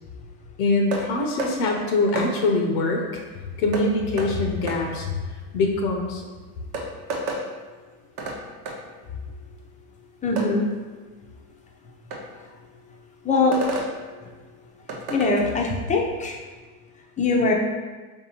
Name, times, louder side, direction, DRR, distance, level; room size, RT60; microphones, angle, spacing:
voice 1, 0.6-3.2 3.6-6.2, left 2 dB, 75° left, 2 dB, 0.7 m, -24 dB
sound 1, 0.9-1.1 1.4-1.5 2.2-2.3 3.7-3.9 4.2-4.3 4.7-4.8 6.2-6.3 6.7-7.4 8.2-8.4 8.7-8.8 10.4-10.5 12.1-12.2 13.5-13.9 14.9-15.3, right 2 dB, 80° right, 0.9 m, -29 dB
voice 2, 10.2-10.7 13.2-13.6 15.1-16.4 17.2-17.5, left 3 dB, 15° left, -1 dB, 0.5 m, -21 dB
4.5 x 2.7 x 2.9 m, 1.4 s
supercardioid pair, 105°, 45 cm